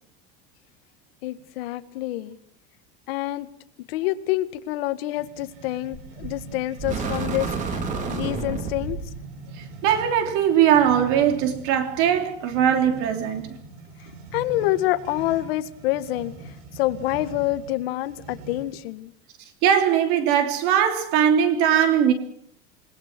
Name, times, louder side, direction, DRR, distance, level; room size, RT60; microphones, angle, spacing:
voice 1, 1.2-2.4 3.1-3.5 3.9-7.8 8.1-9.0 14.0-19.1, left 16 dB, 65° left, 1.9 m, -27 dB
sound 1, 5.1-18.9, right 3 dB, 70° right, 7.5 m, -42 dB
sound 2, 5.9-6.4 6.8-9.1, right 4 dB, 25° right, 3.6 m, -29 dB
voice 2, 9.6-13.5 19.6-22.1, right 9 dB, 45° right, 3.2 m, -20 dB
28.5 x 20.5 x 6.1 m
supercardioid pair, 180°, 32 cm